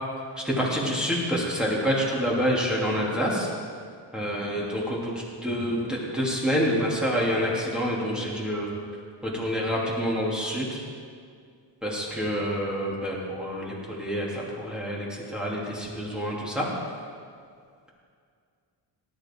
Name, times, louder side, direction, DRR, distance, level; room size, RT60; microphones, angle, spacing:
voice 1, 0.4-3.5 4.1-5.1 5.4-8.7 9.2-10.8 11.8-16.7, equal, ahead, -6 dB, 2.9 m, -27 dB
18.5 x 11.0 x 3.8 m, 2.2 s
cardioid pair, 130°, 45 cm